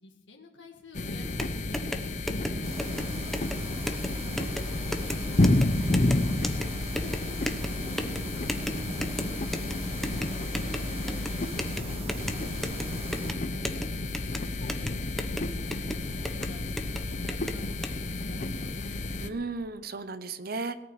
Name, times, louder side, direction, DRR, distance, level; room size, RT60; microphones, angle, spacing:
voice 1, 0.0-1.8 2.1-5.4 6.7-7.5 7.8-8.9 9.2-9.8 10.1-13.0 14.3-15.4 15.7-16.6 16.9-18.7, left 1 dB, 85° left, 1 dB, 1.8 m, -47 dB
sound 1, 0.9-19.3, left 2 dB, 40° left, 0.8 m, -31 dB
sound 2, 1.2-17.9, equal, ahead, 1.0 m, -36 dB
sound 3, 2.6-13.3, right 2 dB, 35° right, 1.6 m, -42 dB
voice 2, 5.8-6.4 19.2-20.8, right 3 dB, 55° right, 12 dB, 0.9 m, -36 dB
18.0 x 6.0 x 9.6 m, 1.0 s
head